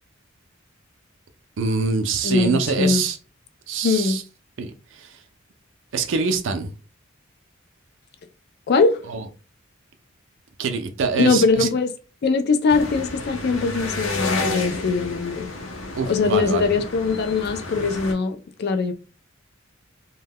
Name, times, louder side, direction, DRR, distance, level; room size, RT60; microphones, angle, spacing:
voice 1, 1.6-3.2 3.7-4.2 4.6-5.1 5.9-6.7 9.1-9.2 10.6-11.7 16.0-16.7, right 5 dB, 65° right, 0.4 m, -24 dB
voice 2, 2.2-3.0 3.8-4.2 8.7-9.0 11.2-11.9 12.2-15.5 16.1-18.9, left 4 dB, 50° left, 0.3 m, -21 dB
sound 1, 12.7-18.1, left 2 dB, 90° left, 0.7 m, -30 dB
2.2 x 2.1 x 3.4 m
head